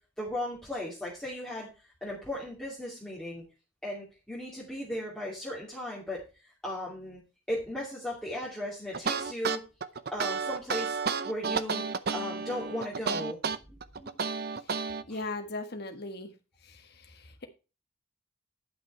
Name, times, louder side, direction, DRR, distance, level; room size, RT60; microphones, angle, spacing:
voice 1, 0.2-1.7 2.0-3.4 3.8-7.2 7.5-9.6 10.1-11.0 11.2-11.8 12.1-13.4 13.7-14.1 15.1-15.2, left 1 dB, 5° left, 2.5 m, -36 dB
sound 1, 8.9-15.0, right 5 dB, 50° right, 0.6 m, -31 dB
voice 2, 14.6-16.3 16.6-17.5, left 2 dB, 50° left, 1.6 m, -39 dB
11.0 x 6.0 x 4.4 m
head